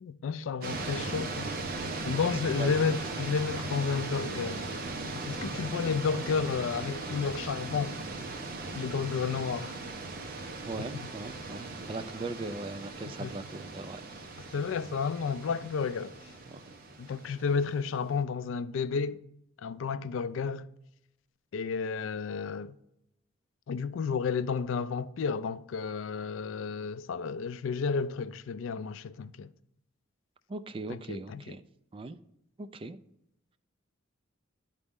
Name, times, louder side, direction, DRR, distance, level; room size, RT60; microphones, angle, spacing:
voice 1, 0.0-1.6 2.1-4.7 5.0-8.0 8.7-9.8 13.2-13.3 14.5-16.1 17.0-19.2 19.6-20.7 21.5-22.7 23.7-29.5 30.9-31.5, left 5 dB, 70° left, 0.3 m, -31 dB
sound 1, 0.6-17.9, right 2 dB, 45° right, 0.9 m, -38 dB
voice 2, 2.3-3.0 10.7-14.0 16.5-16.6 30.5-31.6 31.9-32.2 32.6-33.0, right 3 dB, 25° right, 0.3 m, -39 dB
11.0 x 4.1 x 3.6 m
head